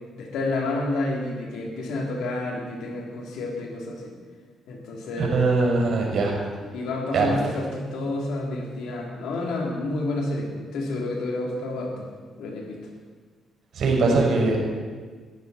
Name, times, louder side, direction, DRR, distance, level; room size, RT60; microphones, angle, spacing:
voice 1, 0.2-4.1 4.7-5.4 6.7-12.1 12.4-12.8, left 2 dB, 85° left, -1 dB, 3.5 m, -29 dB
voice 2, 5.2-6.4 7.1-7.3 13.7-14.6, right 3 dB, 65° right, -1 dB, 5.4 m, -21 dB
20.0 x 14.5 x 4.5 m, 1.5 s
cardioid pair, 90°, 0 cm